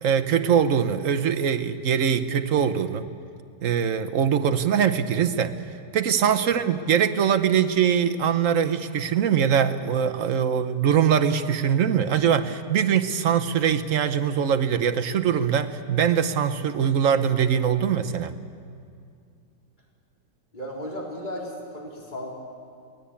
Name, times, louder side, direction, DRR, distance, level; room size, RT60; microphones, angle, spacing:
voice 1, 0.0-3.0 3.6-5.5 5.9-18.3, right 8 dB, 55° right, 10 dB, 1.2 m, -22 dB
voice 2, 20.5-22.3, equal, 25° left, -3 dB, 4.0 m, -35 dB
23.5 x 18.5 x 8.5 m, 2.4 s
omnidirectional pair, 1.8 m